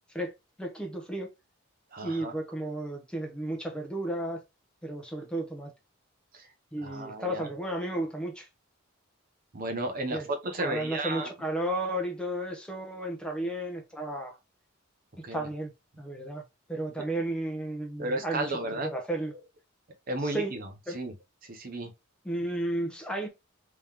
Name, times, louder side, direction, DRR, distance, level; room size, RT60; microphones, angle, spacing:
voice 1, 0.6-1.3 2.0-4.4 4.8-5.7 6.7-8.5 10.1-10.3 10.6-14.4 15.3-15.7 16.0-16.4 16.7-18.5 18.8-19.3 20.2-20.5 20.9-21.0 22.2-23.3, right 1 dB, 5° left, 0.9 m, -33 dB
voice 2, 1.9-2.3 6.3-6.5 6.8-7.5 9.5-11.3 15.2-15.5 18.0-18.9 20.1-21.1 21.4-21.9, right 2 dB, 40° right, 0.7 m, -33 dB
3.7 x 3.0 x 3.4 m
head